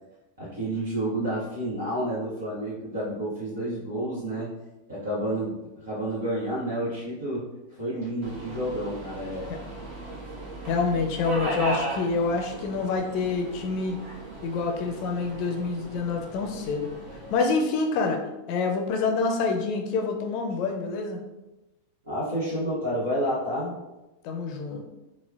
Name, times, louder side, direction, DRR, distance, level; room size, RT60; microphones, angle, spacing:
voice 1, 0.4-4.5 4.9-7.4 7.8-9.5 22.0-23.8, right 1 dB, 70° right, -10 dB, 1.0 m, -30 dB
Subway metro underground, 8.2-17.4, right 1 dB, 45° right, 1.1 m, -36 dB
voice 2, 10.6-14.0 14.4-16.9 17.3-18.2 18.5-21.2 24.2-24.8, left 4 dB, 45° left, 3 dB, 0.5 m, -27 dB
4.3 x 2.1 x 2.3 m, 1.0 s
figure-of-eight pair, 90°, 0 cm